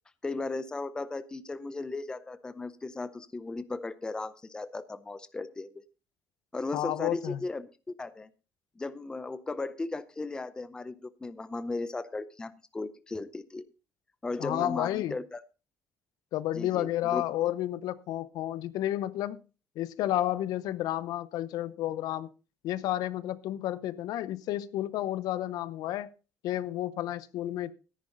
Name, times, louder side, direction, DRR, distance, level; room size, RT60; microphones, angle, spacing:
voice 1, 0.2-5.8 6.5-8.3 8.8-13.7 14.2-15.4 16.5-17.2, left 3 dB, 10° left, 0.6 m, -36 dB
voice 2, 6.7-7.4 14.4-15.2 16.3-19.4 19.8-22.3 22.6-26.1 26.4-27.7, left 13 dB, 75° left, 0.8 m, -31 dB
14.0 x 10.5 x 3.8 m
cardioid pair, 165°, 7 cm